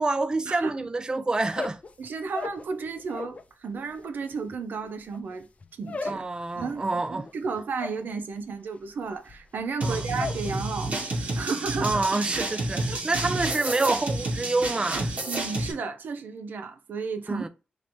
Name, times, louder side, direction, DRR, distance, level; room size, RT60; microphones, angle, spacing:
voice 1, 0.0-1.8 6.1-7.3 9.8-10.0 11.8-15.1 17.3-17.5, right 3 dB, 25° right, 0.4 m, -27 dB
sound 1, 1.4-3.4 3.7-10.5 10.8-11.3 11.6-12.1, left 4 dB, 45° left, 0.5 m, -38 dB
voice 2, 2.0-5.5 5.8-6.2 6.6-12.0 12.9-13.0 15.3-17.5, right 4 dB, 85° right, 0.6 m, -33 dB
sound 2, 9.8-15.7, right 2 dB, 50° right, 1.3 m, -30 dB
3.2 x 2.9 x 4.2 m
cardioid pair, 75°, 3 cm